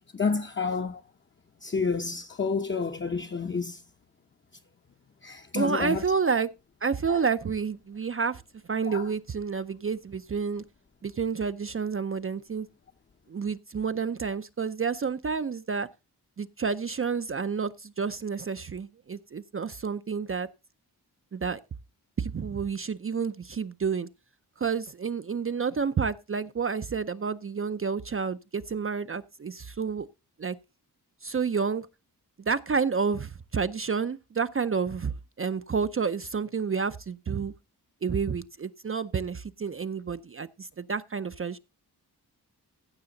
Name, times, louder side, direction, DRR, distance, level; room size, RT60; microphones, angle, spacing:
voice 1, 0.1-1.0 1.6-3.8 5.2-6.0 7.1-7.2 8.9-9.0, left 5 dB, 30° left, 0.8 m, -29 dB
voice 2, 5.5-6.5 6.8-10.6 11.0-12.7 13.3-15.9 16.4-20.5 21.3-21.6 22.2-24.1 24.6-30.1 30.4-30.6 31.2-31.9 32.4-37.5 38.0-41.6, right 5 dB, 35° right, 0.5 m, -30 dB
15.5 x 6.7 x 3.9 m
wide cardioid pair, 115°, 39 cm